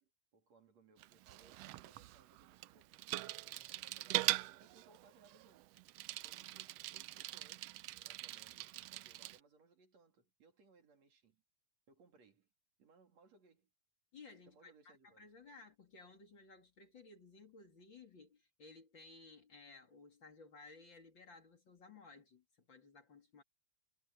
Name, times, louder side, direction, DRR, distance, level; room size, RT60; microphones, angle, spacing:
voice 1, 0.0-5.8 6.2-11.4 11.9-12.5 12.8-13.7 14.5-15.3, right 4 dB, 65° right, 4.0 m, -67 dB
Bicycle, 1.0-9.4, right 17 dB, 80° right, 1.5 m, -42 dB
voice 2, 14.1-23.4, left 3 dB, 40° left, 3.2 m, -58 dB
omnidirectional pair, 3.3 m